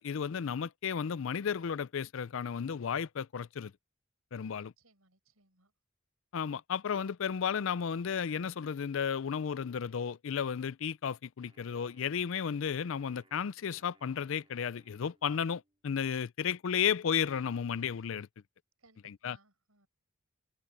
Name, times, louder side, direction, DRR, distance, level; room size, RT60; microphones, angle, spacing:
voice 1, 0.0-3.7 4.3-4.7 6.3-18.3 19.2-19.4, left 7 dB, 65° left, 0.4 m, -33 dB
voice 2, 4.8-5.7 18.8-19.9, right 3 dB, 90° right, 7.1 m, -64 dB
Wind instrument woodwind instrument, 11.4-15.8, right 2 dB, 25° right, 5.8 m, -68 dB
head